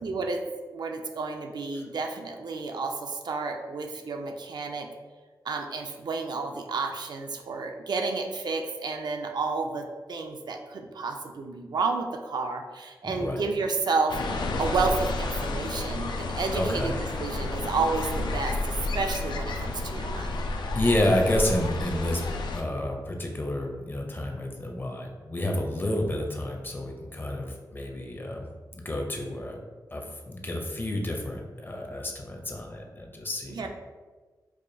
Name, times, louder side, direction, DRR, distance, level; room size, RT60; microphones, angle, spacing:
voice 1, 0.0-0.4 0.7-4.9 5.4-14.2 14.6-20.4 33.5-33.7, right 4 dB, 70° right, 3 dB, 0.4 m, -31 dB
voice 2, 13.0-13.5 16.5-17.0 20.7-22.2 22.5-29.6 29.9-33.7, left 1 dB, 30° left, 2 dB, 0.5 m, -30 dB
sound 1, 14.1-22.6, left 2 dB, 90° left, 0.4 m, -31 dB
4.7 x 2.3 x 2.6 m, 1.3 s
wide cardioid pair, 105°, 7 cm